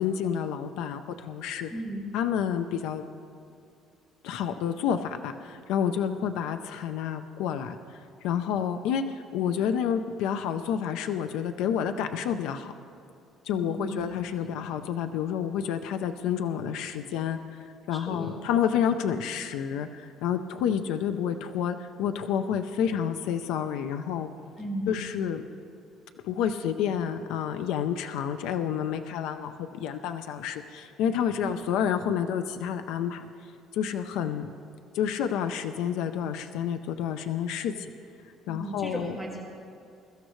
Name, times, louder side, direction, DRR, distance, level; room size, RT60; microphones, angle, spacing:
voice 1, 0.0-1.7 2.1-3.0 4.2-7.8 8.2-12.7 13.4-24.3 24.9-25.4 26.2-33.3 33.7-34.5 34.9-37.9 38.5-39.1, left 8 dB, 80° left, 8 dB, 0.6 m, -29 dB
voice 2, 1.7-2.1 13.6-14.0 17.9-18.4 24.6-25.0 31.4-31.5 38.5-39.4, right 1 dB, 5° left, -3 dB, 2.1 m, -35 dB
22.5 x 12.5 x 3.2 m, 2.5 s
cardioid pair, 170°, 0 cm